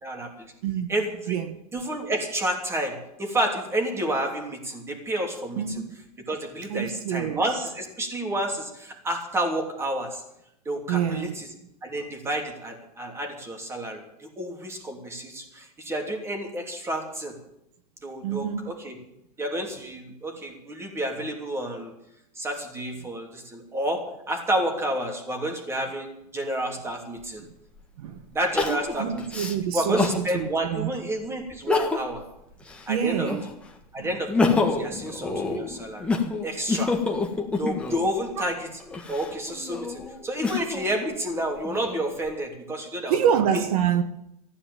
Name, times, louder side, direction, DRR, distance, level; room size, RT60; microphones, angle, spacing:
voice 1, 0.0-0.5 0.9-1.4 1.7-5.8 6.3-10.2 10.6-11.5 11.8-17.4 18.0-19.0 19.4-21.9 22.3-27.4 28.3-29.2 29.7-32.2 32.9-33.3 33.9-36.1 36.4-36.9 37.6-38.7 39.1-43.2, right 1 dB, 15° right, 3.0 m, -30 dB
voice 2, 1.3-1.6 5.6-5.9 6.7-7.4 10.9-11.4 18.2-18.7 28.0-28.2 28.7-30.9 32.9-33.4 34.0-34.2 43.1-44.0, right 9 dB, 70° right, 1.3 m, -26 dB
Crying sobbing, 27.2-27.3 28.6-30.2 30.8-30.9 31.5-32.2 32.6-33.6 34.1-38.1 38.8-40.9 41.5-42.3, left 4 dB, 5° left, 1.7 m, -27 dB
14.5 x 10.0 x 8.8 m
supercardioid pair, 145°, 20 cm